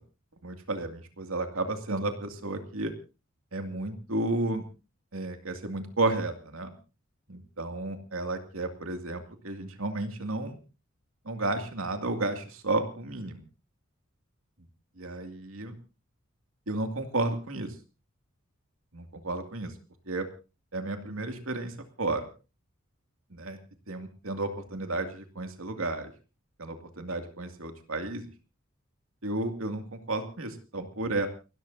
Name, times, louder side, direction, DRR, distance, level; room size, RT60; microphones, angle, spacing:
voice 1, 0.4-2.9 3.5-4.7 5.1-6.7 7.3-10.6 11.2-13.4 15.0-15.8 16.7-17.7 18.9-19.7 20.1-20.3 20.7-22.3 23.3-23.6 23.9-26.1 26.6-28.3 29.2-31.3, right 2 dB, 85° right, 6 dB, 2.5 m, -32 dB
29.5 x 13.0 x 2.7 m, 0.32 s
head